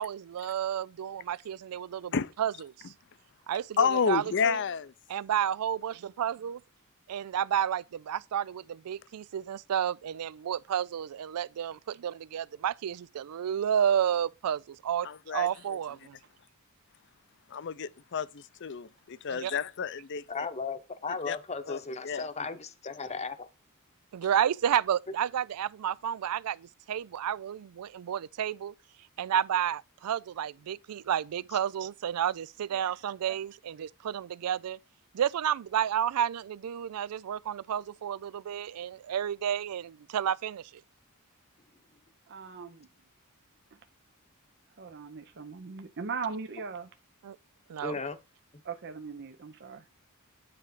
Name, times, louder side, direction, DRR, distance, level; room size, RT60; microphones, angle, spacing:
voice 1, 0.0-2.1 2.4-2.5 3.5-4.6 5.1-6.6 7.1-16.2 19.3-19.5 24.1-28.7 29.2-34.8 35.1-40.7 47.2-47.4 47.7-48.0, right 9 dB, 90° right, 0.4 m, -31 dB
voice 2, 3.8-4.9 15.0-15.5 17.5-20.5 21.3-21.4 21.7-21.8 22.0-22.3, left 6 dB, 55° left, 0.5 m, -30 dB
voice 3, 20.3-23.5 47.8-48.2, left 4 dB, 30° left, 0.8 m, -36 dB
voice 4, 42.3-42.9 43.7-43.8 44.8-46.9 48.6-49.9, right 5 dB, 50° right, 0.6 m, -39 dB
9.9 x 3.3 x 5.6 m
head